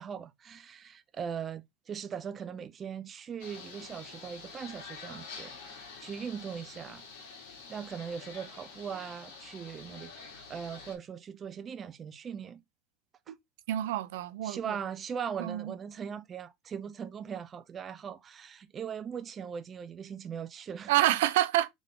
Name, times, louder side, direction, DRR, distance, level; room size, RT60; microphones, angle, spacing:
voice 1, 0.0-7.0 7.7-12.6 13.3-13.4 14.4-20.9, right 7 dB, 25° right, 0.3 m, -40 dB
sound 1, 3.4-11.0, left 5 dB, 75° left, 2.0 m, -47 dB
voice 2, 13.7-14.8 15.4-15.7 20.9-21.7, right 14 dB, 80° right, 0.5 m, -27 dB
3.7 x 3.5 x 3.6 m
supercardioid pair, 150°, 0 cm